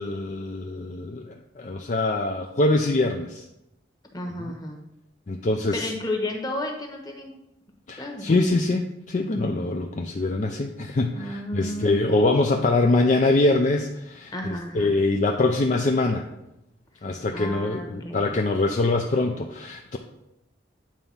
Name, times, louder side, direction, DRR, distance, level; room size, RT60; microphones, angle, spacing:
voice 1, 0.0-3.4 5.3-5.9 7.9-14.3 14.7-16.3 17.0-20.0, left 2 dB, 40° left, 3 dB, 0.5 m, -24 dB
voice 2, 4.1-4.8 5.7-7.3 8.0-8.3 11.1-12.0 14.3-15.0 17.3-18.3, left 1 dB, 20° left, 1 dB, 1.1 m, -32 dB
9.0 x 3.4 x 5.5 m, 0.88 s
head